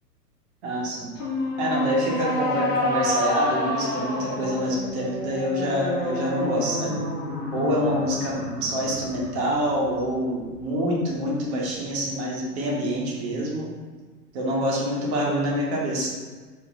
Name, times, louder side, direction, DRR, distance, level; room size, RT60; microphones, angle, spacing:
voice 1, 0.6-1.1 1.6-7.0 7.5-13.7 14.3-16.1, equal, 40° right, -4 dB, 1.2 m, -26 dB
sound 1, 1.2-10.5, left 1 dB, 50° left, 1.2 m, -29 dB
3.2 x 3.1 x 3.7 m, 1.4 s
figure-of-eight pair, 110°, 49 cm